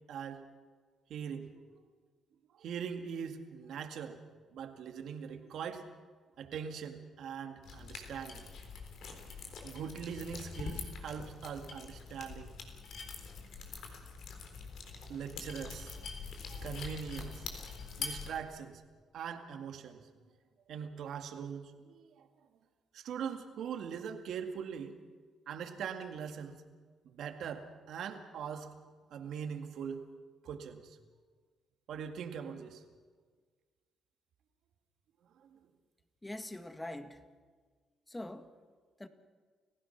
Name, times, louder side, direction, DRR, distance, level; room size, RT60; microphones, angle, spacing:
voice 1, 0.1-0.4 1.1-1.5 2.5-4.2 4.5-5.9 6.4-8.5 9.6-12.5 15.1-16.1 16.5-17.5 18.0-18.8 19.1-20.1 20.7-22.3 22.9-25.0 25.5-26.6 27.0-28.7 29.1-30.0 30.4-31.0 31.9-32.8 35.4-35.6, right 7 dB, 70° right, 2.1 m, -41 dB
sound 1, 7.6-18.3, left 5 dB, 70° left, 3.8 m, -44 dB
voice 2, 36.2-37.2 38.1-38.5 39.0-39.1, left 1 dB, 15° left, 1.8 m, -43 dB
29.5 x 16.0 x 6.0 m
cardioid pair, 90°, 0 cm